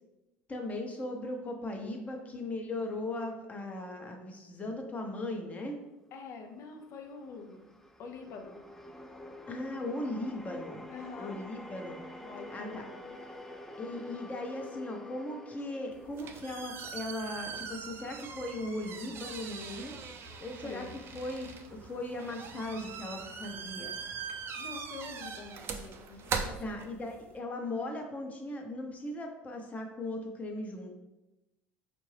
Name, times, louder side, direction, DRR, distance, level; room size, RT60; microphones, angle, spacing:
voice 1, 0.5-5.8 9.5-10.9 11.2-12.0 12.5-12.9 13.8-20.1 20.4-23.9 26.6-30.9, left 1 dB, 25° left, 2 dB, 0.9 m, -38 dB
voice 2, 6.1-7.7 8.0-8.6 10.9-11.4 12.2-13.2 20.6-20.9 24.6-26.8, left 4 dB, 60° left, 4 dB, 0.7 m, -46 dB
sound 1, 6.8-17.2, left 1 dB, 5° left, 0.4 m, -47 dB
sound 2, 15.9-27.4, right 5 dB, 45° right, 0.5 m, -41 dB
4.5 x 2.5 x 3.2 m, 0.98 s
supercardioid pair, 85°, 5 cm